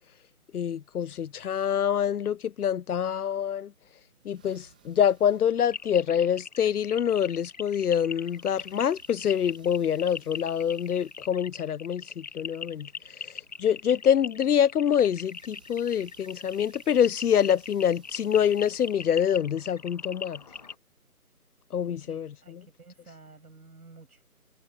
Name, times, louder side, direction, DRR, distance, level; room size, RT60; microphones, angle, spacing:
voice 1, 0.5-3.7 4.2-12.9 13.6-20.4 21.7-22.7, left 9 dB, 80° left, 0.6 m, -26 dB
sound 1, 3.9-20.7, right 7 dB, 5° right, 1.2 m, -62 dB
sound 2, 5.6-20.7, left 5 dB, 25° left, 1.6 m, -41 dB
voice 2, 22.1-24.2, right 3 dB, 75° right, 6.3 m, -52 dB
figure-of-eight pair, 170°, 45 cm